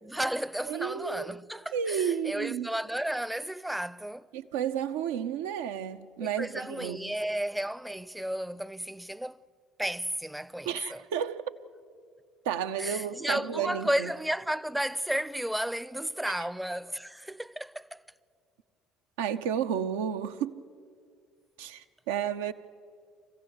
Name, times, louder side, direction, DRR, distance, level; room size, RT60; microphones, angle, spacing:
voice 1, 0.0-4.3 6.2-9.4 9.8-11.0 12.8-18.0, right 1 dB, 5° right, 0.5 m, -33 dB
voice 2, 0.6-1.3 1.7-2.7 4.3-7.2 10.7-11.5 12.4-14.1 16.4-16.5 19.2-20.6 21.6-22.5, right 8 dB, 75° right, 0.7 m, -32 dB
25.0 x 16.0 x 7.9 m
hypercardioid pair, 60°, 0 cm